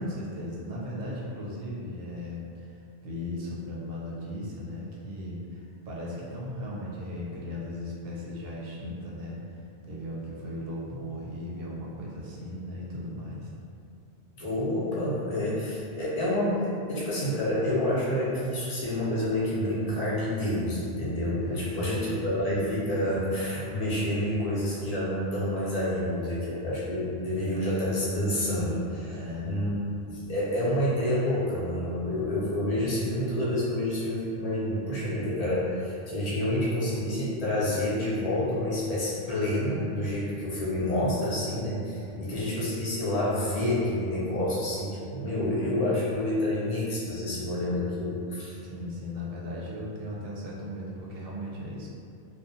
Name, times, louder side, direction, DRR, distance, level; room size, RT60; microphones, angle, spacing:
voice 1, 0.0-13.5 21.4-22.2 29.1-29.7 42.1-42.6 48.6-51.9, left 1 dB, 65° right, -5 dB, 0.8 m, -37 dB
voice 2, 14.4-29.8 30.1-48.6, left 1 dB, 45° left, -8 dB, 0.6 m, -28 dB
2.5 x 2.1 x 2.6 m, 2.5 s
omnidirectional pair, 1.1 m